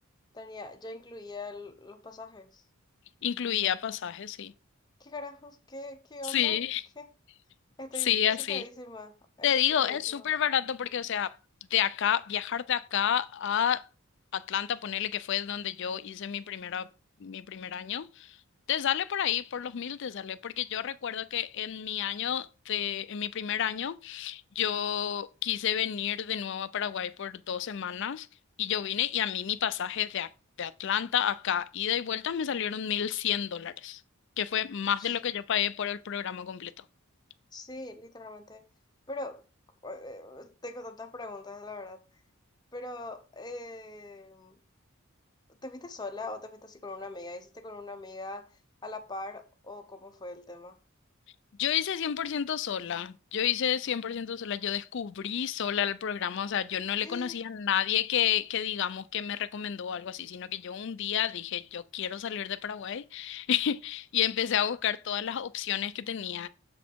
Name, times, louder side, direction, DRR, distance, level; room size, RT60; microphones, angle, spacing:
voice 1, 0.3-2.6 5.0-6.6 7.0-7.1 7.8-8.1 8.4-10.3 35.0-35.1 37.5-38.6 39.1-39.4 39.8-42.0 42.7-44.6 45.5-48.5 48.8-50.8 57.0-57.4, left 2 dB, 20° left, 0.7 m, -42 dB
voice 2, 3.2-4.5 6.2-6.8 7.9-8.6 9.4-11.4 11.7-13.8 14.3-16.9 17.2-18.4 18.7-28.3 28.6-30.3 30.6-34.0 34.4-36.8 51.6-66.5, left 9 dB, 55° left, 0.4 m, -30 dB
6.8 x 4.1 x 4.5 m
head